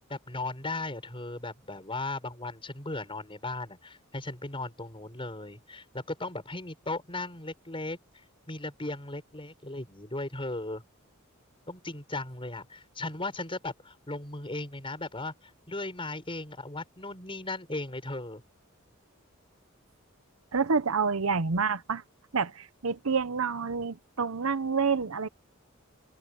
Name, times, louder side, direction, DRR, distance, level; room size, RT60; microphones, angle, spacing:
voice 1, 0.1-8.0 8.5-10.8 11.7-18.4, left 2 dB, 25° left, 5.9 m, -37 dB
voice 2, 20.5-22.0 22.3-25.3, right 5 dB, 90° right, 0.9 m, -28 dB
head